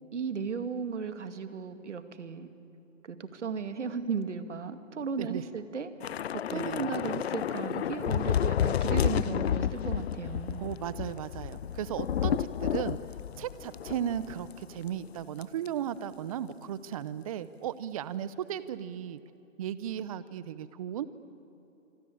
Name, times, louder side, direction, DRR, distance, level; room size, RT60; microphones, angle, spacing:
voice 1, 0.1-2.5 3.0-5.9 6.5-10.6, right 5 dB, 65° right, 9 dB, 2.4 m, -35 dB
Thunder / Rain, 6.0-14.6 14.9-15.1 15.4-15.7, left 10 dB, 55° left, 0.5 m, -31 dB
voice 2, 10.6-13.0 13.4-19.2 19.6-21.1, right 10 dB, 30° right, 16 dB, 0.8 m, -36 dB
26.5 x 26.0 x 8.7 m, 3.0 s
hypercardioid pair, 145°, 38 cm